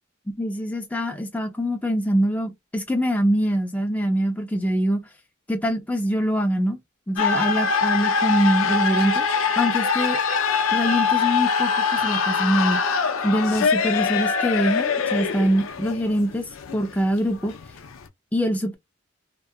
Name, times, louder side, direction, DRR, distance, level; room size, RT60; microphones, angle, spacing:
voice 1, 0.4-5.0 5.5-6.8 7.1-9.2 9.6-10.2 10.7-12.8 13.2-16.5 16.7-17.5 18.3-18.7, equal, 5° left, 0.4 m, -23 dB
sound 1, 7.2-18.1, left 5 dB, 70° left, 0.4 m, -23 dB
2.7 x 2.3 x 2.3 m
head